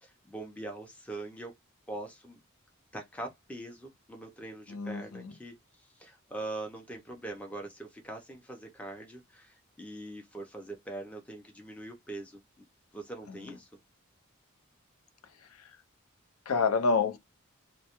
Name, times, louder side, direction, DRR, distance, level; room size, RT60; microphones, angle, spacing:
voice 1, 0.0-1.5 1.9-2.4 2.9-12.6 12.9-13.7, right 2 dB, 5° left, 0.4 m, -42 dB
voice 2, 4.7-5.3 13.3-13.4 15.6-15.7 16.5-17.2, left 4 dB, 85° left, 0.5 m, -28 dB
2.2 x 2.0 x 2.8 m
head